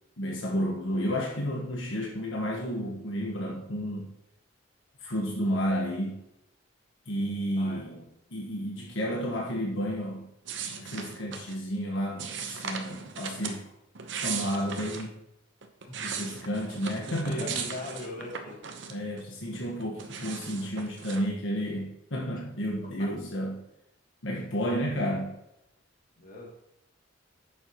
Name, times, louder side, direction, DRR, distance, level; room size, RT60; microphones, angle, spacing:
voice 1, 0.2-4.1 5.0-6.2 7.0-8.0 8.3-10.3 10.7-13.7 14.1-15.2 16.0-17.6 18.9-23.6 24.2-25.4, equal, 80° left, -1 dB, 1.4 m, -31 dB
voice 2, 7.6-8.0 15.8-15.9 17.1-18.6 26.2-26.5, left 1 dB, 45° left, -3 dB, 2.7 m, -40 dB
sound 1, 10.5-11.6 12.2-13.6 13.9-15.1 15.6-19.2 19.5-21.3, right 6 dB, 65° right, 0.9 m, -38 dB
10.5 x 7.1 x 3.0 m, 0.84 s
head